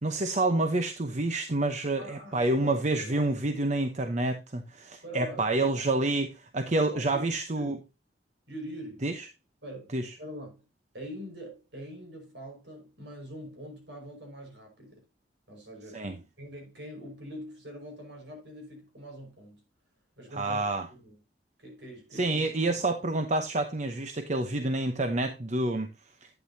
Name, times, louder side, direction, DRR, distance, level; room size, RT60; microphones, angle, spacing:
voice 1, 0.0-7.8 9.0-9.3 9.9-10.1 15.9-16.2 20.3-20.9 22.1-25.9, right 2 dB, 40° right, 0.9 m, -28 dB
voice 2, 2.0-2.8 3.0-3.3 5.0-5.9 6.7-7.3 7.6-7.8 8.5-9.0 9.6-10.6 10.9-15.0 15.5-19.6 20.2-21.2 21.6-22.5 22.7-22.8, equal, 70° right, 5.6 m, -44 dB
11.5 x 9.2 x 2.8 m
head